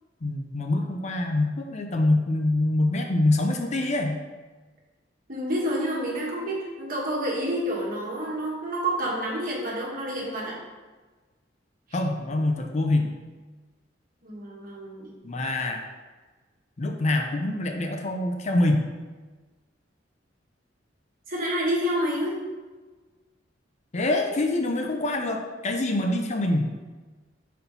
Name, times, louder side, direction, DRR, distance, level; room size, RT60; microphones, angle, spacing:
voice 1, 0.2-4.2 11.9-13.1 15.2-15.8 16.8-18.8 23.9-26.7, left 2 dB, 40° left, 4 dB, 0.5 m, -25 dB
voice 2, 5.3-10.6 14.2-15.1 21.3-22.4, equal, 50° right, -3 dB, 1.5 m, -28 dB
5.5 x 4.3 x 4.0 m, 1.3 s
head